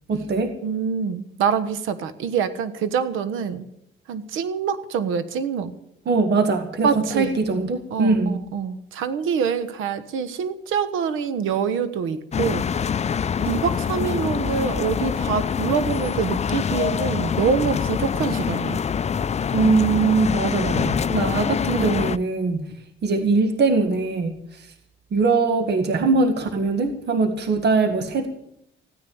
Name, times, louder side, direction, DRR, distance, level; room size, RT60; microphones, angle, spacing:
voice 1, 0.1-0.5 6.1-8.4 19.5-22.6 23.0-24.7 25.1-28.3, right 3 dB, 60° right, 7 dB, 1.9 m, -21 dB
voice 2, 0.6-3.7 4.1-5.7 6.8-7.3 7.9-12.6 13.4-18.8, right 6 dB, 90° right, 13 dB, 1.2 m, -25 dB
sound 1, 12.3-22.2, left 7 dB, 35° left, 0.5 m, -25 dB
15.5 x 10.0 x 8.7 m, 0.76 s
cardioid pair, 90°, 20 cm